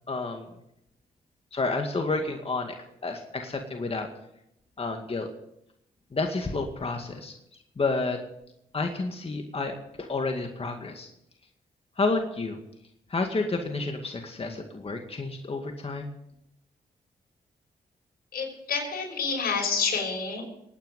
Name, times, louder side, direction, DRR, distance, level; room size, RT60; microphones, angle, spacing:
voice 1, 0.1-0.5 1.5-2.7 3.0-4.1 4.8-5.3 6.1-7.3 7.8-8.2 8.7-11.1 12.0-12.6 13.1-16.1, left 3 dB, 35° left, 4 dB, 2.1 m, -30 dB
voice 2, 18.3-20.4, left 5 dB, 70° left, 0 dB, 6.3 m, -28 dB
22.0 x 9.6 x 5.4 m, 0.80 s
supercardioid pair, 55°, 16 cm